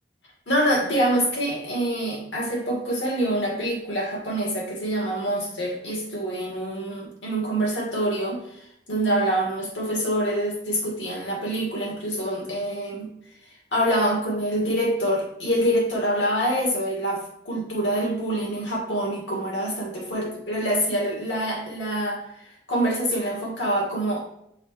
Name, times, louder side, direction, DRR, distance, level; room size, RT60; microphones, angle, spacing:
voice 1, 0.5-8.6 8.9-13.1 13.7-22.2 22.7-24.2, right 1 dB, 80° left, -2 dB, 2.2 m, -25 dB
6.5 x 4.4 x 3.3 m, 0.74 s
head